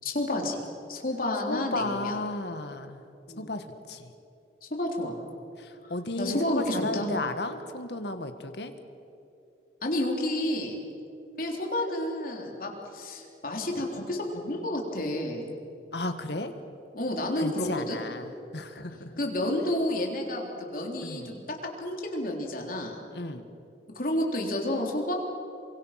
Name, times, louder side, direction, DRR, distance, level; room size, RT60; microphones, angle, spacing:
voice 1, 0.0-0.6 0.9-2.2 3.3-3.5 4.7-5.2 5.8-7.1 9.8-10.8 11.4-15.5 16.9-18.0 19.2-23.0 24.0-25.1, left 1 dB, 50° left, 0 dB, 3.6 m, -30 dB
voice 2, 1.5-3.0 3.4-4.1 5.6-8.7 15.9-16.5 17.4-19.1 21.0-21.3 23.1-23.5, left 2 dB, 70° left, 8 dB, 1.7 m, -34 dB
28.5 x 24.5 x 5.9 m, 2.8 s
head